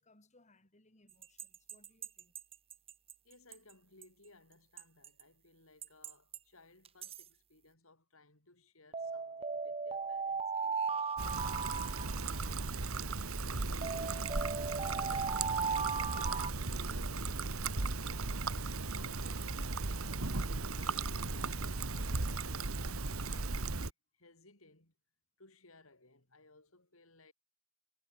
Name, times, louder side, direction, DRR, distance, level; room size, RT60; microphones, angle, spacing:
voice 1, 0.0-2.3, left 2 dB, 35° left, 5.4 m, -67 dB
sound 1, 1.2-3.1 3.5-3.6 4.0-4.1 4.8-5.2 5.8-6.4 6.8-7.2 8.9-12.7 13.8-16.5, right 5 dB, 30° right, 1.0 m, -37 dB
voice 2, 3.2-13.0 13.6-15.1 16.1-19.9 20.6-23.7 24.1-24.9 25.4-27.3, left 2 dB, 75° left, 8.0 m, -62 dB
Trickle dribble, 11.2-23.9, right 3 dB, 90° right, 1.8 m, -36 dB
head